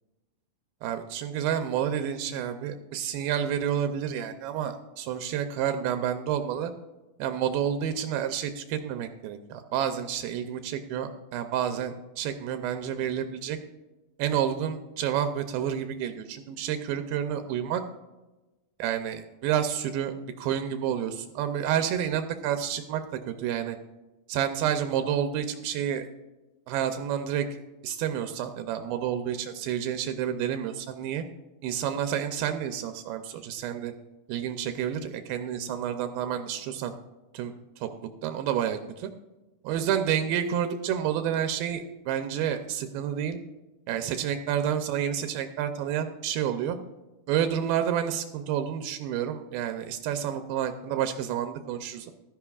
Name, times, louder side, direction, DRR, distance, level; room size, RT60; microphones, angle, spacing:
voice 1, 0.8-6.7 7.2-13.6 14.2-17.8 18.8-23.8 24.3-26.1 26.7-27.5 27.8-31.2 31.6-33.9 34.3-36.9 37.3-37.9 38.2-39.1 39.6-43.4 43.9-46.8 47.3-52.1, right 9 dB, 85° right, 8 dB, 2.5 m, -29 dB
15.5 x 12.5 x 2.4 m, 1.1 s
omnidirectional pair, 4.2 m